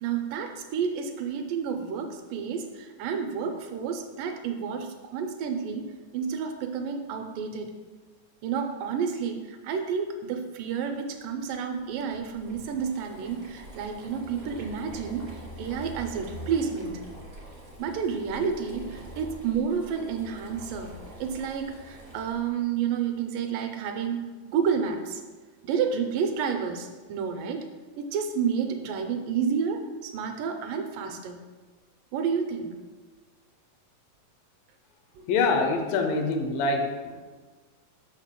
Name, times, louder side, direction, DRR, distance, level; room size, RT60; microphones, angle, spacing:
voice 1, 0.0-7.7 8.4-17.0 17.8-20.9 21.2-25.2 25.6-27.7 28.0-31.4 32.1-32.7 35.2-35.3, right 6 dB, 80° right, 5 dB, 2.1 m, -30 dB
Boiling, 11.3-22.6, right 1 dB, 50° right, 0.7 m, -45 dB
voice 2, 35.3-37.2, left 3 dB, 80° left, 4 dB, 2.3 m, -25 dB
6.4 x 6.1 x 3.6 m, 1.3 s
omnidirectional pair, 4.0 m